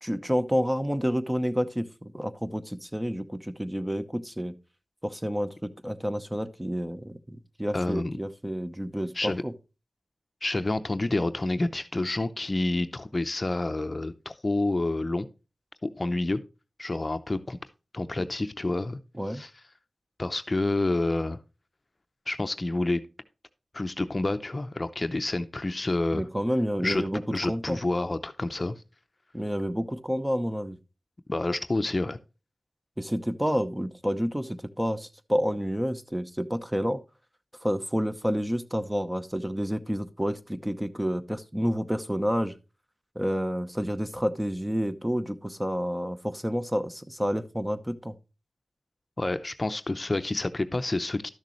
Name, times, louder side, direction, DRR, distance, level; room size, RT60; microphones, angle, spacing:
voice 1, 0.0-4.5 5.0-9.5 18.2-18.3 19.2-19.4 26.1-27.8 29.3-30.8 33.0-37.0 37.6-42.5 43.2-48.2, equal, 10° right, 10 dB, 0.8 m, -29 dB
voice 2, 7.7-8.2 9.1-9.4 10.4-15.3 15.8-16.4 16.8-17.6 17.9-19.0 19.3-19.5 20.2-21.4 22.3-23.0 23.7-26.3 26.8-27.0 27.3-28.8 31.3-32.2 49.2-51.3, left 2 dB, 40° left, 10 dB, 0.6 m, -28 dB
12.5 x 6.6 x 3.1 m, 0.30 s
cardioid pair, 50°, 0 cm